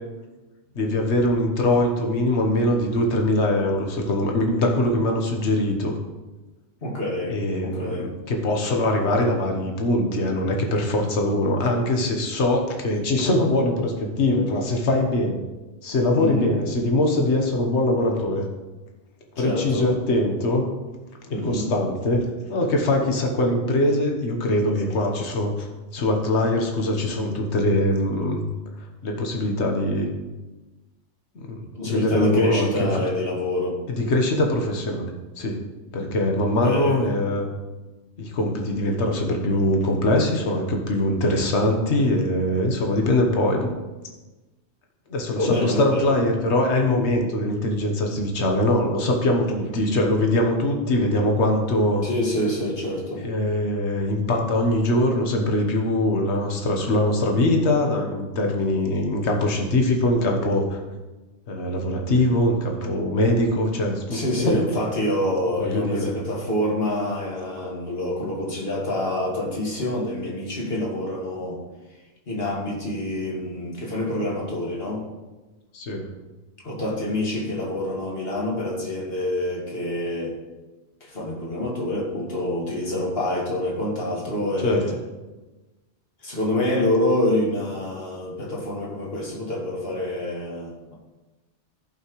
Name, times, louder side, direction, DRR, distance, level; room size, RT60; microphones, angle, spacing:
voice 1, 0.7-6.0 7.3-8.0 8.3-15.4 15.8-18.4 19.4-20.7 21.3-25.7 25.9-28.4 29.0-30.1 31.3-33.0 33.9-35.6 35.9-37.5 38.2-43.7 45.1-52.1 53.2-60.8 61.5-64.6 65.6-66.2 75.7-76.1 84.6-84.8, left 1 dB, 75° left, 2 dB, 1.5 m, -22 dB
voice 2, 6.8-8.1 16.1-16.5 19.4-19.9 21.3-21.7 31.8-34.1 36.6-37.0 45.4-46.2 52.0-53.3 64.1-71.6 72.3-75.0 76.6-80.4 81.0-85.0 86.2-90.9, left 1 dB, 60° left, -2 dB, 2.2 m, -26 dB
15.0 x 5.8 x 3.2 m, 1.1 s
omnidirectional pair, 1.2 m